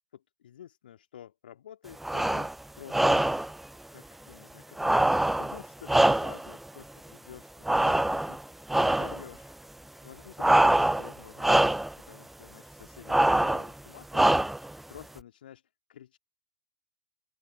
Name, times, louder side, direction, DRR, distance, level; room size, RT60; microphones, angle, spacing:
voice 1, 0.1-3.2 3.9-4.8 5.3-8.4 8.7-9.6 10.0-14.4 14.9-16.2, left 10 dB, 60° left, 2.5 m, -50 dB
sound 1, 2.0-2.5 2.9-3.5 4.8-6.6 7.7-8.4 8.7-9.2 10.4-11.1 11.4-11.9 13.1-13.7 14.1-14.7, right 1 dB, 5° right, 0.3 m, -23 dB
open air
figure-of-eight pair, 95°, 6 cm